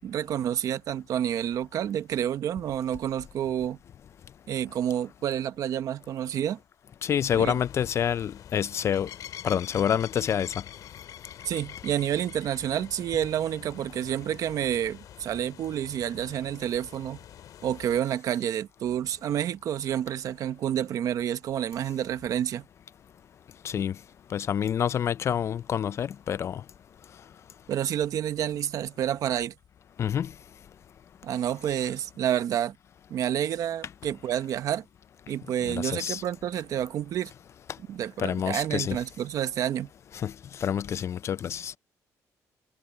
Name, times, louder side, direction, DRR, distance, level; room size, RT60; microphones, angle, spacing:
voice 1, 0.0-3.8 4.5-6.6 7.3-7.6 11.4-17.2 17.6-22.7 27.7-29.5 31.2-32.7 33.1-34.8 35.3-37.3 37.8-39.9, right 10 dB, 65° right, 1.0 m, -29 dB
voice 2, 7.0-9.1 9.4-10.6 23.6-24.0 24.3-26.6 30.0-30.3 35.7-36.2 38.2-39.0 40.1-41.8, left 9 dB, 45° left, 0.5 m, -28 dB
sound 1, 7.2-18.0, left 10 dB, 70° left, 2.6 m, -46 dB
cardioid pair, 130°, 6 cm